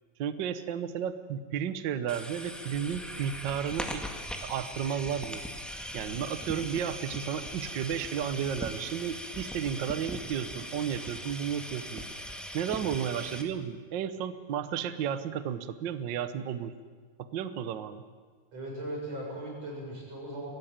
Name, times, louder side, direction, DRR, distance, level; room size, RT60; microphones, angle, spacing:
voice 1, 0.2-4.0 4.4-5.4 5.9-12.0 12.5-16.7 17.2-18.0, right 8 dB, 75° right, 11 dB, 1.0 m, -33 dB
sound 1, 2.1-13.4, equal, ahead, 1.1 m, -40 dB
voice 2, 18.5-20.5, right 1 dB, 55° right, -2 dB, 8.1 m, -38 dB
22.5 x 18.0 x 8.9 m, 1.6 s
omnidirectional pair, 3.5 m